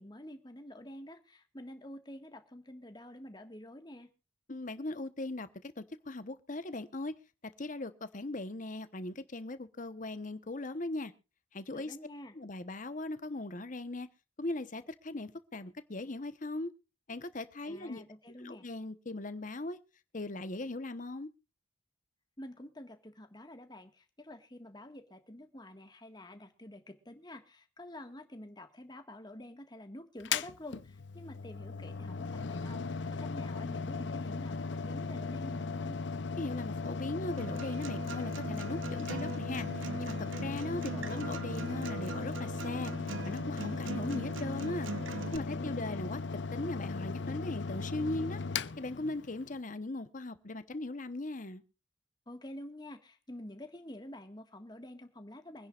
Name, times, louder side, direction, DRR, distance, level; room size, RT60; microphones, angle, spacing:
voice 1, 0.0-4.1 11.7-12.3 17.6-18.7 22.4-36.0 40.7-41.3 45.2-46.0 52.3-55.7, left 1 dB, 20° left, 1.6 m, -48 dB
voice 2, 4.5-5.5 5.8-7.1 7.6-11.1 11.5-12.0 12.3-14.1 14.4-16.7 17.1-18.0 18.4-19.8 20.1-21.3 36.4-42.9 43.2-44.9 45.3-46.2 46.5-48.4 48.8-51.6, left 2 dB, 40° left, 1.0 m, -39 dB
Mechanical fan, 30.2-49.6, left 4 dB, 65° left, 0.6 m, -37 dB
Acoustic guitar, 37.4-45.4, right 3 dB, 80° right, 0.8 m, -42 dB
24.5 x 10.5 x 2.4 m
head